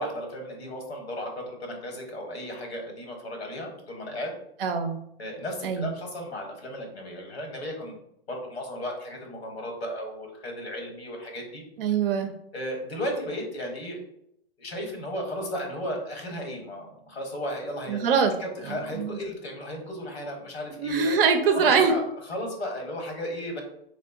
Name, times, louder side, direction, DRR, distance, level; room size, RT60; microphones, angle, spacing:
voice 1, 0.0-4.3 5.2-8.0 8.3-11.6 12.5-14.0 14.6-18.1 18.4-21.2 21.5-23.6, equal, 85° left, 2 dB, 1.1 m, -35 dB
voice 2, 4.6-5.0 5.6-5.9 11.8-12.3 17.9-18.3 18.7-19.2 20.8-21.9, right 6 dB, 65° right, 6 dB, 0.5 m, -23 dB
3.6 x 2.1 x 2.3 m, 0.75 s
hypercardioid pair, 125°, 31 cm